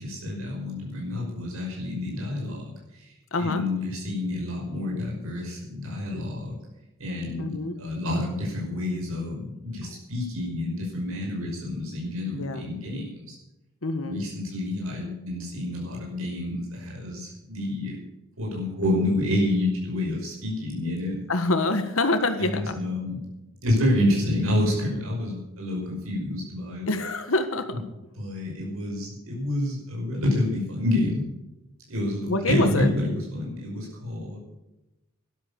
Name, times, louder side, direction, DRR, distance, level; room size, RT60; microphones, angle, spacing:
voice 1, 0.0-6.6 7.0-13.4 14.0-18.0 18.4-21.2 22.4-23.3 23.6-26.9 27.7-27.8 28.2-31.2 31.9-34.4, left 1 dB, 90° right, -2 dB, 5.7 m, -28 dB
voice 2, 3.3-3.6 7.4-7.7 12.4-12.7 13.8-14.2 21.3-22.7 26.9-27.7 32.3-32.9, left 2 dB, 75° left, 8 dB, 1.5 m, -25 dB
13.5 x 12.0 x 7.1 m, 0.96 s
head